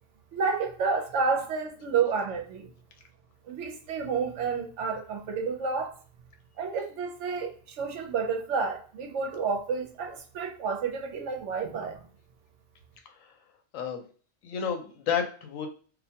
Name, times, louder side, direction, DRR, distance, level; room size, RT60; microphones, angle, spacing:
voice 1, 0.3-2.7 3.5-5.9 6.6-12.0, right 5 dB, 70° right, 0.8 m, -30 dB
voice 2, 14.4-15.7, left 7 dB, 85° left, 1.0 m, -31 dB
2.4 x 2.2 x 2.7 m
omnidirectional pair, 1.3 m